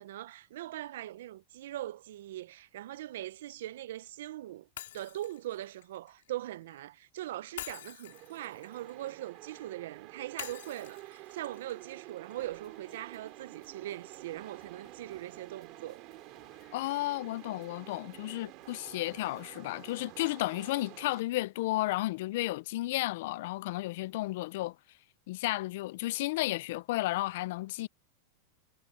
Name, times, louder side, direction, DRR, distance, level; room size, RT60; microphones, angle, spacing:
voice 1, 0.0-4.7 4.9-16.0, right 14 dB, 70° right, 0.5 m, -41 dB
Shatter, 4.8-6.8 7.6-9.7 10.4-12.5, left 13 dB, 85° left, 3.4 m, -47 dB
sound 1, 8.0-21.2, right 20 dB, 40° right, 2.3 m, -50 dB
sound 2, 12.4-20.4, left 14 dB, 30° left, 2.8 m, -67 dB
voice 2, 16.7-24.8 25.3-27.9, left 18 dB, 55° left, 0.4 m, -33 dB
supercardioid pair, 170°, 0 cm